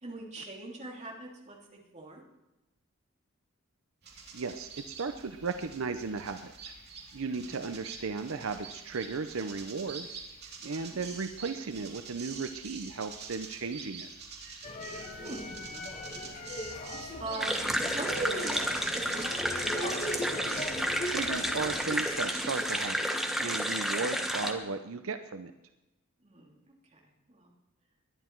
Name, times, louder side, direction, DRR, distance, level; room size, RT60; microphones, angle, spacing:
voice 1, 0.0-2.2 7.3-7.6 10.6-11.0 15.2-16.3 17.2-19.9 26.2-26.6 27.3-27.5, right 2 dB, 35° right, -2 dB, 2.8 m, -41 dB
sound 1, 4.0-22.8, right 5 dB, 55° right, 3.2 m, -47 dB
voice 2, 4.3-6.7 7.1-10.2 10.6-14.1 21.0-25.5, right 4 dB, 80° right, 8 dB, 0.7 m, -36 dB
sound 2, 14.6-21.9, left 1 dB, 35° left, 1.7 m, -39 dB
sound 3, 17.4-24.5, equal, ahead, 1.2 m, -31 dB
20.5 x 11.0 x 4.6 m, 0.99 s
head